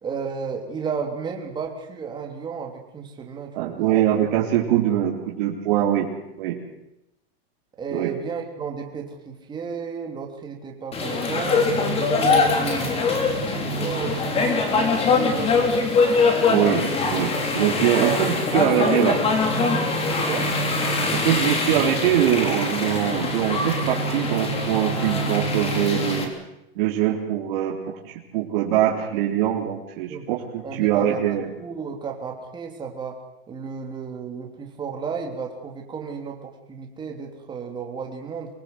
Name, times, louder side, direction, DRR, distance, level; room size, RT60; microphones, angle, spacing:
voice 1, 0.0-4.3 7.8-11.6 11.9-15.9 18.0-18.2 18.5-19.0 20.2-20.5 30.1-30.3 30.6-31.2 31.6-33.2 33.5-38.5, right 6 dB, 15° right, 2 dB, 3.4 m, -33 dB
voice 2, 3.5-6.1 6.4-6.6 7.9-8.1 16.5-16.8 17.1-19.2 21.1-26.3 26.8-28.0 28.3-31.5, right 11 dB, 55° right, -2 dB, 3.9 m, -23 dB
sound 1, 10.9-26.2, left 3 dB, 20° left, 3.3 m, -23 dB
25.0 x 20.0 x 8.1 m, 0.85 s
supercardioid pair, 165°, 30 cm